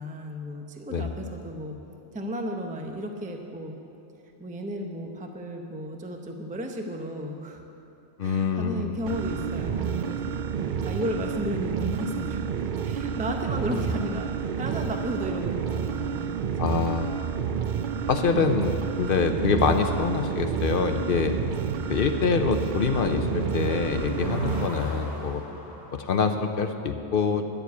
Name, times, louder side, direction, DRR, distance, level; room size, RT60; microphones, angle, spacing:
voice 1, 0.0-1.8 2.1-3.7 4.4-7.6 8.2-16.8, equal, 10° right, 3 dB, 0.5 m, -34 dB
voice 2, 8.2-8.9 16.6-17.4 18.1-21.4 21.9-25.4 25.9-27.4, left 5 dB, 55° left, 7 dB, 0.7 m, -25 dB
sound 1, 9.1-24.7, right 7 dB, 65° right, 0.5 m, -30 dB
sound 2, 20.6-26.1, equal, 35° right, 2.7 m, -44 dB
11.0 x 7.1 x 8.2 m, 2.8 s
omnidirectional pair, 1.3 m